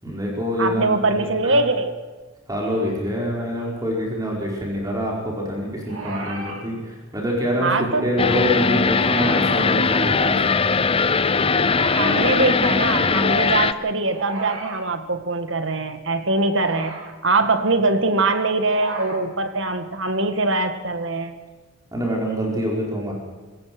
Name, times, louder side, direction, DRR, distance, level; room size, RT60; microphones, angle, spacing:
voice 1, 0.0-1.6 2.5-10.6 21.9-23.1, equal, 15° right, -2 dB, 4.9 m, -25 dB
voice 2, 0.6-2.0 7.6-8.1 12.0-16.9 17.2-21.4, right 3 dB, 65° right, 8 dB, 2.0 m, -22 dB
sound 1, 5.8-6.6 8.8-9.5 11.6-12.3 14.1-14.8 16.4-17.1 18.6-19.2 20.8-20.9, right 2 dB, 80° right, 6.4 m, -34 dB
sound 2, 8.2-13.7, left 4 dB, 25° left, 0.7 m, -20 dB
26.5 x 16.0 x 6.2 m, 1.4 s
head